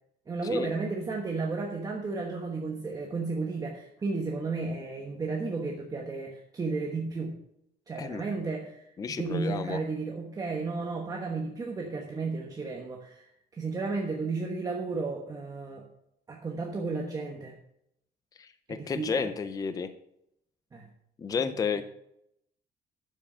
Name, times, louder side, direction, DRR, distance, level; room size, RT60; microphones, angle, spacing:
voice 1, 0.3-7.3 7.9-13.2 13.5-15.9 16.3-17.5 18.7-19.3 20.7-20.9 21.4-21.8, right 3 dB, 20° right, 0 dB, 1.2 m, -33 dB
voice 2, 8.0-8.3 9.0-9.8 18.4-19.9 21.2-21.8, left 5 dB, 20° left, 11 dB, 0.5 m, -31 dB
10.5 x 7.4 x 5.6 m, 0.77 s
cardioid pair, 155°, 16 cm